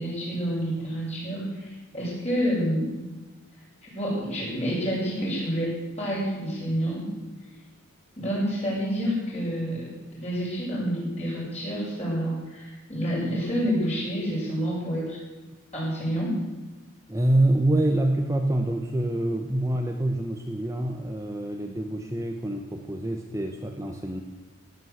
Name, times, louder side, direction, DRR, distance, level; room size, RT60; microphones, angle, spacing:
voice 1, 0.0-3.1 3.8-7.1 8.2-9.9 10.2-15.2 15.7-16.4, equal, 30° left, -6 dB, 7.3 m, -28 dB
voice 2, 17.1-24.2, right 1 dB, 15° right, 3 dB, 0.9 m, -26 dB
17.0 x 9.2 x 7.9 m, 1.2 s
head